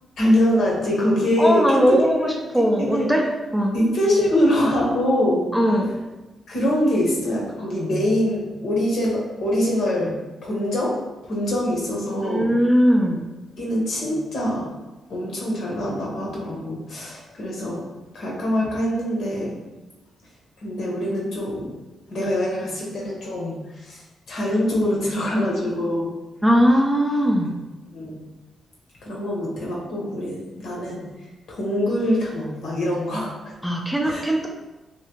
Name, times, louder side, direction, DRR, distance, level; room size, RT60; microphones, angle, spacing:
voice 1, 0.2-2.0 2.8-3.1 3.7-5.5 6.5-11.0 11.2-12.5 13.6-14.7 15.1-17.8 18.1-19.6 20.6-21.7 22.1-24.0 24.3-26.2 27.9-28.2 29.0-31.0 31.5-33.5 34.0-34.3, left 1 dB, 75° left, -3 dB, 1.1 m, -24 dB
voice 2, 1.4-3.3 3.5-3.7 5.5-5.9 12.2-13.3 26.4-27.5 33.6-34.5, equal, 5° right, 1 dB, 0.4 m, -19 dB
3.2 x 2.7 x 2.9 m, 1.1 s
cardioid pair, 90°, 0 cm